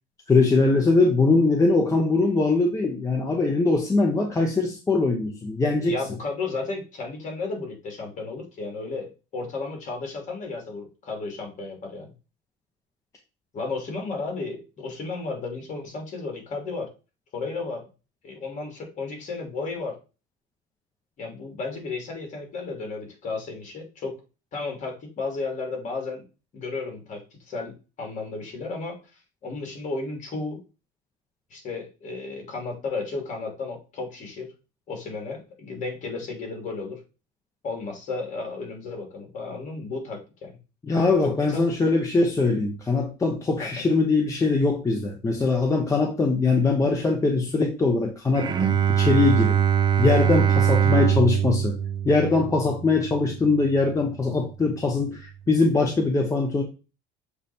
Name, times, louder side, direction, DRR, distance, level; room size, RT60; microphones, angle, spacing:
voice 1, 0.3-5.9 40.8-49.6 50.0-51.8 52.0-56.6, left 3 dB, 15° left, 1 dB, 0.9 m, -22 dB
voice 2, 5.8-12.1 13.5-16.9 17.3-17.9 18.2-20.0 21.2-24.2 24.5-26.2 26.5-29.0 29.4-30.6 31.5-34.5 34.9-37.0 37.6-40.6 41.2-41.6 43.6-43.8, left 3 dB, 40° left, 2 dB, 2.7 m, -33 dB
Bowed string instrument, 48.3-53.6, right 9 dB, 20° right, 0.6 m, -22 dB
6.9 x 3.3 x 4.3 m, 0.31 s
cardioid pair, 140°, 20 cm